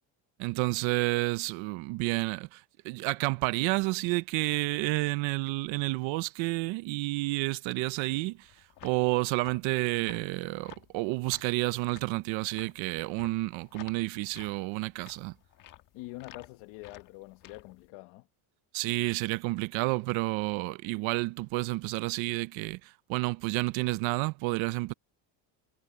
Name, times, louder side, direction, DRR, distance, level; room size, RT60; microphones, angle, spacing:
voice 1, 0.4-8.5 8.8-15.3 18.7-24.9, right 22 dB, 70° right, 0.7 m, -30 dB
sound 1, 8.3-17.9, left 12 dB, 40° left, 1.4 m, -54 dB
voice 2, 15.9-18.3, left 20 dB, 70° left, 1.2 m, -45 dB
cardioid pair, 170°, 49 cm